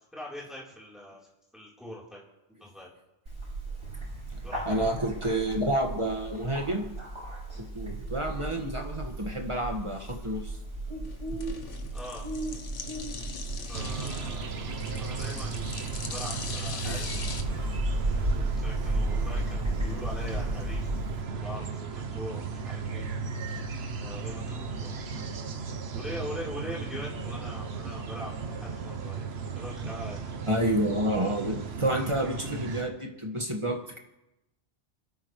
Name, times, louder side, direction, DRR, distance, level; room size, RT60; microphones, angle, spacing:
voice 1, 0.1-1.3 1.5-2.2 2.6-2.9 4.4-4.9 7.5-7.7 11.9-12.3 13.6-15.6 16.0-20.9 21.4-23.1 24.0-25.1 25.9-29.3 29.6-30.5, equal, ahead, -6 dB, 4.0 m, -42 dB
Bird, 3.3-21.2, right 1 dB, 85° right, 7.0 m, -34 dB
voice 2, 4.7-6.9 7.7-10.6 16.9-17.0 30.5-34.0, right 1 dB, 25° right, 1 dB, 1.9 m, -29 dB
sound 1, 8.8-17.4, left 5 dB, 85° left, 1.4 m, -42 dB
sound 2, 13.7-32.8, right 5 dB, 60° right, 1.2 m, -35 dB
28.0 x 13.5 x 3.3 m, 0.92 s
omnidirectional pair, 1.2 m